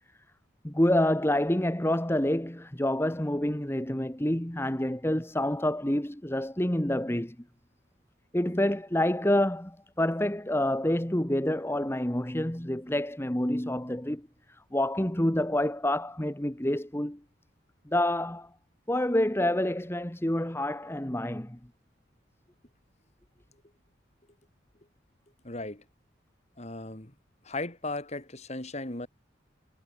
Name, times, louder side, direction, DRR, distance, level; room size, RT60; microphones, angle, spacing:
voice 1, 0.6-7.3 8.3-17.2 17.9-18.5 18.9-21.6, left 1 dB, 10° left, 1.2 m, -28 dB
voice 2, 25.4-25.9 26.6-27.1 27.4-29.1, left 2 dB, 35° left, 2.3 m, -36 dB
head